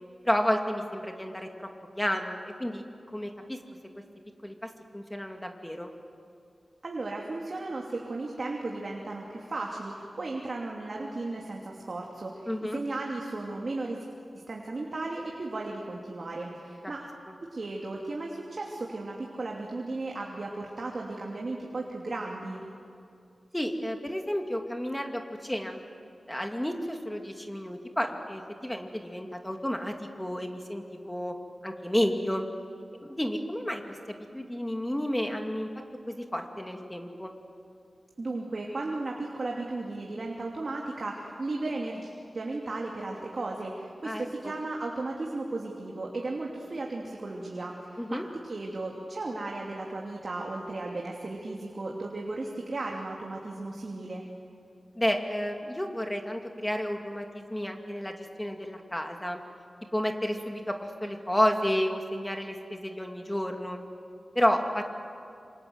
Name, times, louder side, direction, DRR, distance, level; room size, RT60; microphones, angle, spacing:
voice 1, 0.2-1.7 2.0-2.8 3.1-3.6 4.4-4.5 4.9-5.9 12.5-12.8 23.5-25.8 26.3-31.3 31.6-32.5 32.9-33.8 34.1-35.7 36.1-37.3 44.0-44.2 48.0-48.2 55.0-59.4 59.9-63.8 64.3-64.9, equal, 10° left, 3 dB, 2.5 m, -31 dB
voice 2, 6.8-14.0 14.5-17.0 17.5-22.6 38.2-54.2, right 2 dB, 50° right, -1 dB, 2.9 m, -35 dB
28.0 x 26.0 x 8.1 m, 2.5 s
wide cardioid pair, 120°, 0 cm